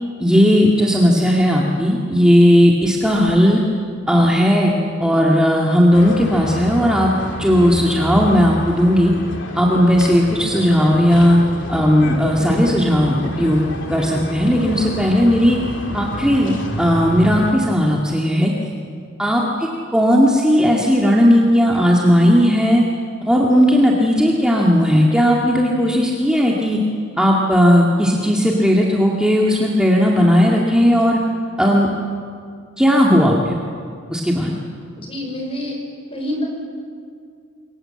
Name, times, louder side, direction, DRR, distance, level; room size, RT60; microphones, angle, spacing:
voice 1, 0.2-3.6 4.1-9.1 9.5-11.4 11.7-13.6 13.9-15.6 15.9-18.5 19.2-22.8 23.2-26.8 27.2-31.2 31.6-31.9 32.8-33.5 34.1-34.5, equal, 5° right, -3 dB, 2.0 m, -15 dB
sound 1, 5.9-17.5, left 1 dB, 60° left, 3.0 m, -29 dB
voice 2, 35.0-35.8 36.1-36.5, left 1 dB, 25° left, 1 dB, 5.5 m, -27 dB
27.5 x 23.5 x 7.8 m, 2.3 s
head